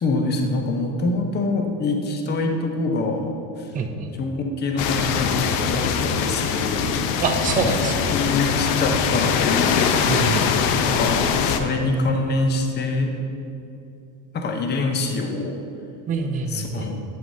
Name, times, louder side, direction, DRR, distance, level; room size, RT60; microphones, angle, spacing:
voice 1, 0.0-3.7 4.2-7.1 8.1-10.2 10.8-13.1 14.3-15.6 16.5-17.0, left 2 dB, 25° left, 3 dB, 0.6 m, -25 dB
voice 2, 3.7-4.1 7.2-8.1 10.1-10.6 16.1-16.9, right 4 dB, 20° right, 4 dB, 0.4 m, -25 dB
sound 1, 4.8-11.6, left 6 dB, 90° left, 0.6 m, -22 dB
8.7 x 5.9 x 2.7 m, 2.7 s
cardioid pair, 125°, 42 cm